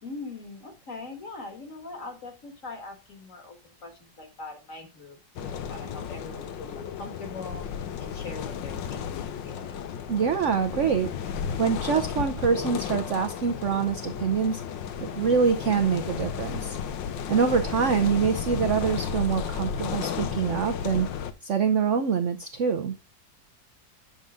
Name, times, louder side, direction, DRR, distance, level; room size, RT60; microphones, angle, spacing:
voice 1, 0.0-7.7 8.0-9.8, left 3 dB, 45° left, 5 dB, 2.0 m, -42 dB
sound 1, 5.4-21.3, left 7 dB, 85° left, 1.5 m, -33 dB
voice 2, 10.1-11.1 11.6-14.6 15.0-16.8 17.3-21.1 21.4-22.9, right 6 dB, 60° right, 8 dB, 0.8 m, -25 dB
8.5 x 5.6 x 3.7 m, 0.27 s
omnidirectional pair, 2.0 m